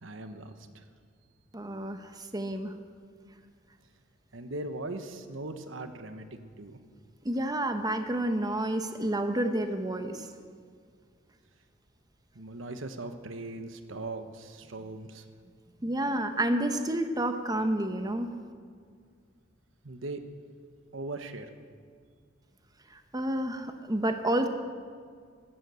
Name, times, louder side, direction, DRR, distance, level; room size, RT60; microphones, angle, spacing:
voice 1, 0.0-0.8 4.3-6.3 6.6-6.8 12.3-15.2 19.8-20.2 20.9-21.5, right 2 dB, 85° right, 8 dB, 1.2 m, -39 dB
voice 2, 1.5-2.7 7.2-10.3 15.8-18.3 23.1-24.5, right 1 dB, 20° right, 7 dB, 1.0 m, -29 dB
14.0 x 12.5 x 8.2 m, 2.1 s
head